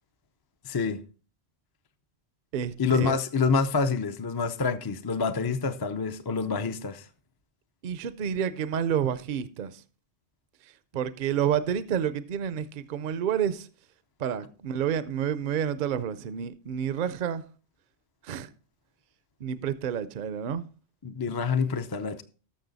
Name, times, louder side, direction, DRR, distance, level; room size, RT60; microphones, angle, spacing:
voice 1, 0.6-1.0 2.8-7.0 21.0-22.2, left 5 dB, 30° left, 0.5 m, -27 dB
voice 2, 2.5-3.2 7.8-9.8 10.9-13.7 14.2-17.4 18.2-18.5 19.4-20.6, right 8 dB, 55° right, 0.7 m, -29 dB
13.0 x 6.4 x 4.0 m
omnidirectional pair, 1.1 m